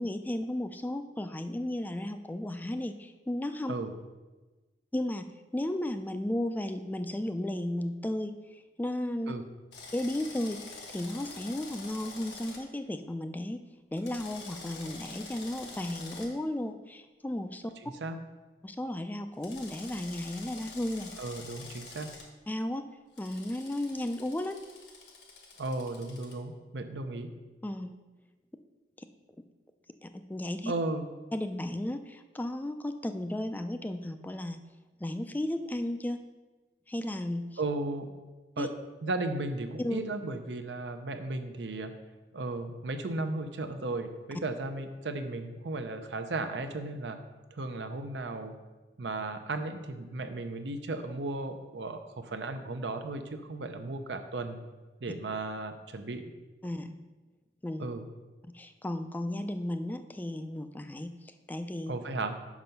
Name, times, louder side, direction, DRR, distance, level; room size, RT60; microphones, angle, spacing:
voice 1, 0.0-3.7 4.9-5.2 5.5-9.3 9.9-13.6 13.9-17.6 18.6-21.1 22.5-22.9 23.2-24.6 27.6-28.0 29.0-29.1 30.0-30.7 31.3-34.6 35.0-36.2 36.9-37.6 38.6-38.7 39.8-40.0 56.6-57.0 57.6-57.9 58.4-61.9, left 1 dB, 10° left, 8 dB, 0.3 m, -34 dB
Drill, 9.7-12.6 14.0-16.3 19.4-22.2 23.2-26.3, left 3 dB, 80° left, 1.3 m, -47 dB
voice 2, 17.8-18.2 21.2-22.1 25.6-27.3 30.7-31.1 37.6-38.1 38.6-38.7 39.0-41.9 42.3-47.2 47.5-48.5 49.0-54.6 55.0-56.3 57.8-58.0 61.9-62.4, right 2 dB, 80° right, 8 dB, 0.7 m, -35 dB
6.0 x 5.6 x 5.3 m, 1.2 s
head